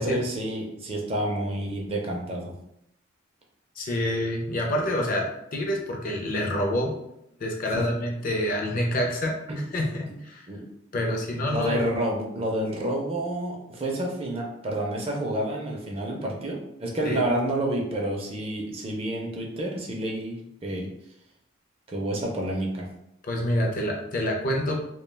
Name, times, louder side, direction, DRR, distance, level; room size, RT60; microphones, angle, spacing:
voice 1, 0.0-2.5 7.7-7.8 9.5-9.6 10.5-10.6 10.9-11.0 11.5-20.9 21.9-22.9, right 1 dB, 30° right, -1 dB, 0.4 m, -29 dB
voice 2, 3.8-7.0 7.4-9.4 9.7-10.5 10.9-11.9 17.0-17.2 23.2-24.8, left 1 dB, 45° left, 1 dB, 0.4 m, -27 dB
2.2 x 2.2 x 3.2 m, 0.79 s
head